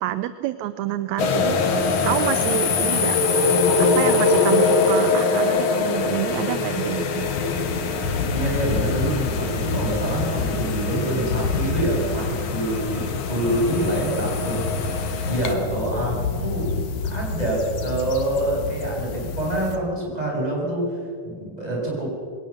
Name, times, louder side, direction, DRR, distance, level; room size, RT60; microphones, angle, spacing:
voice 1, 0.0-1.6 2.0-7.3, right 13 dB, 75° right, 13 dB, 1.8 m, -28 dB
sound 1, 1.2-15.5, left 4 dB, 50° left, 1.8 m, -23 dB
sound 2, 7.2-19.8, left 4 dB, 70° left, 2.9 m, -29 dB
voice 2, 8.3-16.7 17.1-22.1, right 1 dB, 10° right, -3 dB, 6.8 m, -26 dB
21.5 x 18.5 x 7.2 m, 2.2 s
omnidirectional pair, 3.7 m